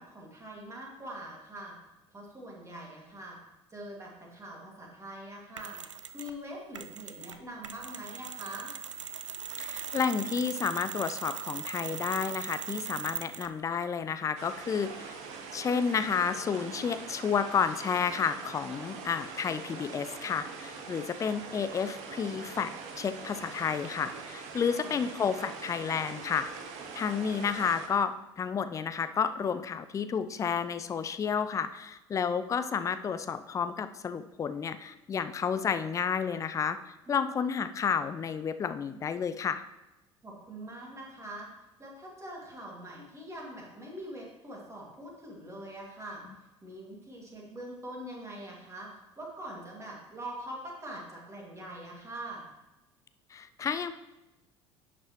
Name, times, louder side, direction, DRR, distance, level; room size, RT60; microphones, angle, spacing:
voice 1, 0.0-1.8 2.1-3.4 3.7-5.8 6.1-8.7 24.7-25.0 37.1-37.2 40.2-41.5 41.8-46.2 46.6-52.5, right 1 dB, 20° right, -2 dB, 2.2 m, -43 dB
Mechanisms, 5.6-6.4 6.7-13.6, right 7 dB, 80° right, 0.4 m, -40 dB
voice 2, 9.6-14.9 15.5-22.7 23.0-26.5 26.9-39.6 53.3-53.9, left 6 dB, 20° left, 11 dB, 0.4 m, -31 dB
sound 1, 14.4-27.9, right 5 dB, 50° right, 1.0 m, -43 dB
10.0 x 6.0 x 3.0 m, 1.0 s
figure-of-eight pair, 65°, 15 cm